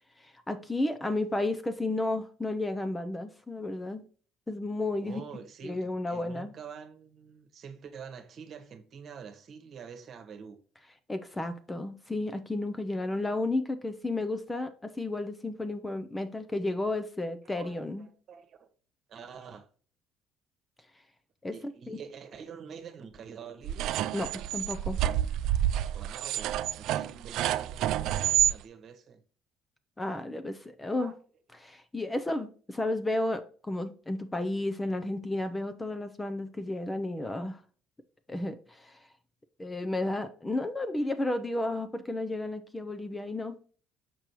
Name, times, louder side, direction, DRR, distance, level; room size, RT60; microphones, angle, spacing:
voice 1, 0.2-4.0 4.5-5.2 5.6-6.5 11.1-18.1 21.4-21.5 21.9-22.0 24.1-25.0 30.0-31.1 31.6-37.6 38.3-39.0 39.6-43.6, left 2 dB, 10° left, 0.5 m, -32 dB
voice 2, 5.0-10.6 17.4-18.7 19.1-19.7 21.5-23.9 25.9-29.2 31.0-31.1, right 6 dB, 45° right, 1.2 m, -46 dB
sound 1, 23.6-28.5, right 12 dB, 70° right, 0.3 m, -28 dB
6.0 x 5.2 x 3.0 m
cardioid pair, 120°, 0 cm